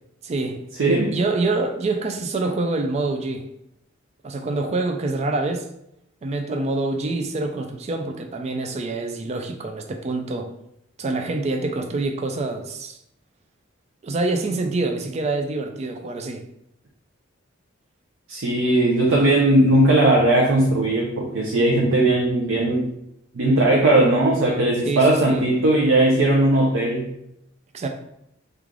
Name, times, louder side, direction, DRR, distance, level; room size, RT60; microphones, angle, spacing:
voice 1, 0.2-0.6 1.1-3.5 4.2-5.7 6.2-10.5 11.0-13.0 14.0-16.4 24.8-25.5 27.7-27.9, right 3 dB, 35° right, 0.3 m, -26 dB
voice 2, 0.8-1.2 18.3-22.8 23.3-27.1, right 1 dB, 80° right, 0.5 m, -18 dB
3.2 x 2.4 x 3.6 m
head